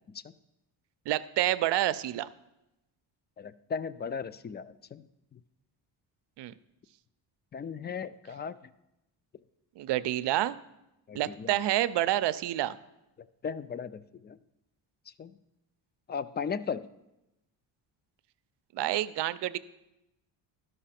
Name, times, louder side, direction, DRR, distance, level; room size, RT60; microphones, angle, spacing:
voice 1, 1.1-2.3 6.4-6.5 9.8-10.6 11.1-12.8 18.7-19.6, right 14 dB, 65° right, 15 dB, 0.6 m, -28 dB
voice 2, 3.4-5.0 5.3-5.4 7.5-8.5 11.1-11.5 13.4-14.4 15.2-15.3 16.1-16.9, left 6 dB, 25° left, 16 dB, 0.3 m, -36 dB
12.0 x 5.5 x 5.8 m, 0.91 s
cardioid pair, 85°, 45 cm